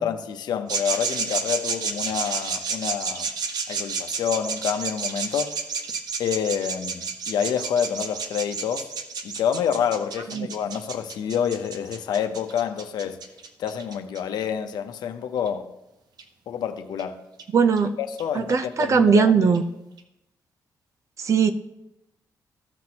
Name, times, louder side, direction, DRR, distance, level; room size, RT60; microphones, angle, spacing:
voice 1, 0.0-3.3 3.7-5.5 6.2-8.9 9.2-13.2 13.6-15.7 16.5-17.2 18.0-19.5, left 8 dB, 90° left, 0.7 m, -28 dB
sound 1, 0.7-14.2 15.5-15.6 16.2-16.3 17.0-17.1 17.4-17.5 17.8-17.9 18.2-18.3 18.5-18.6 18.8-18.9 19.1-19.2 19.5-19.6 20.0-20.1, right 5 dB, 75° right, 0.9 m, -30 dB
voice 2, 17.5-17.9 18.3-19.6 21.2-21.5, right 5 dB, 45° right, 0.6 m, -19 dB
15.0 x 6.0 x 2.9 m
cardioid pair, 120°, 7 cm